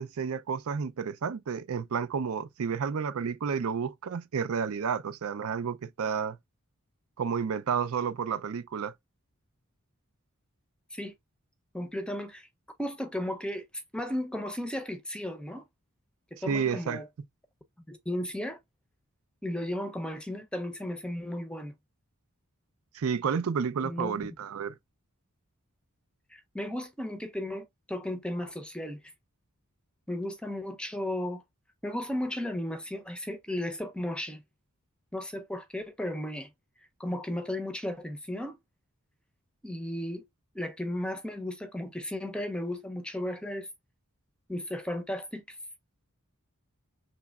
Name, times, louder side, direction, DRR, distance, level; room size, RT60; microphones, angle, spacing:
voice 1, 0.0-6.4 7.2-8.9 16.5-17.0 22.9-24.7, right 6 dB, 75° right, 0.4 m, -31 dB
voice 2, 11.7-12.5 12.8-13.6 13.9-15.6 16.3-17.1 17.9-18.6 19.4-21.7 23.8-24.2 26.3-29.0 30.1-31.4 31.8-34.4 35.1-36.5 37.0-38.6 39.6-40.3 40.5-43.7 44.5-45.6, left 1 dB, 5° left, 0.6 m, -35 dB
5.9 x 3.0 x 2.3 m
head